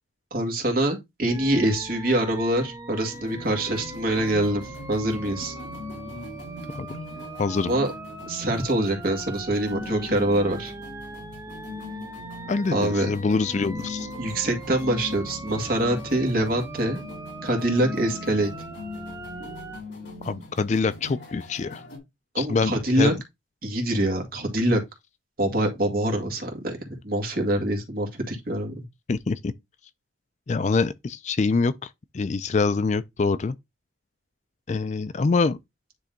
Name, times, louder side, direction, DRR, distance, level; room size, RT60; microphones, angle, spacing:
voice 1, 0.3-5.5 7.6-7.9 8.3-10.7 12.7-13.1 14.2-17.0 17.4-18.5 22.3-23.1 23.6-24.8 25.4-28.8, right 1 dB, 45° right, 2.0 m, -25 dB
sound 1, 1.3-19.8, right 2 dB, 15° right, 0.8 m, -40 dB
sound 2, 3.1-22.0, left 2 dB, 60° left, 4.3 m, -40 dB
voice 2, 7.4-7.7 12.5-14.1 20.2-21.8 22.4-23.1 29.1-29.5 30.5-33.6 34.7-35.6, left 4 dB, 35° left, 0.3 m, -25 dB
9.9 x 3.3 x 3.8 m
head